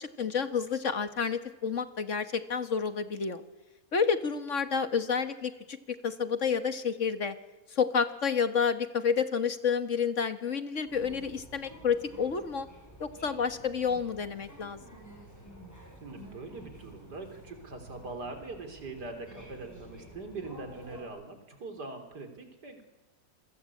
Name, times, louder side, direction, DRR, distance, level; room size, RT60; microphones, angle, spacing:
voice 1, 0.0-3.4 3.9-7.3 7.7-12.7 13.0-14.8, left 6 dB, 50° left, 10 dB, 1.7 m, -30 dB
sound 1, 10.9-21.0, right 1 dB, 10° left, 7.1 m, -51 dB
voice 2, 16.0-22.8, right 3 dB, 90° right, 6 dB, 4.1 m, -42 dB
28.5 x 21.5 x 8.5 m, 1.1 s
omnidirectional pair, 1.7 m